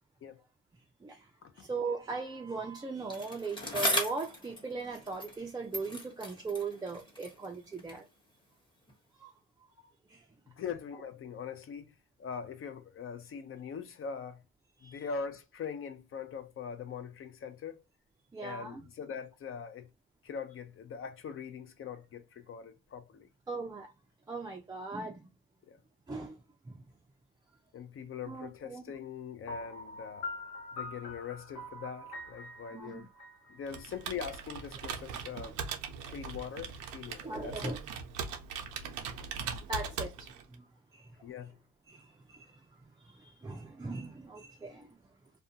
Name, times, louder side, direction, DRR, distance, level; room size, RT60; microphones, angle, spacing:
voice 1, 1.5-8.1 9.2-9.3 10.1-10.3 14.8-15.0 18.3-18.9 23.5-23.9 24.3-25.3 26.1-26.8 28.3-28.8 32.7-33.0 37.2-37.8 39.7-40.7 40.9-41.1 41.9-42.7 43.0-45.0, right 3 dB, 15° right, 0.4 m, -39 dB
Bicycle, 3.1-5.5 5.7-8.1 8.9-9.0, left 1 dB, 15° left, 1.0 m, -37 dB
voice 2, 10.5-11.9 12.2-14.4 14.8-17.8 18.4-19.9 20.2-23.3 25.7-25.8 27.7-30.3 30.7-33.1 33.5-35.6 36.1-37.8 41.2-41.6, left 6 dB, 45° left, 0.5 m, -42 dB
Piano, 29.5-34.3, left 2 dB, 85° left, 1.1 m, -44 dB
Computer keyboard, 33.7-40.5, right 6 dB, 90° right, 0.5 m, -40 dB
2.4 x 2.2 x 2.7 m
cardioid pair, 90°, 30 cm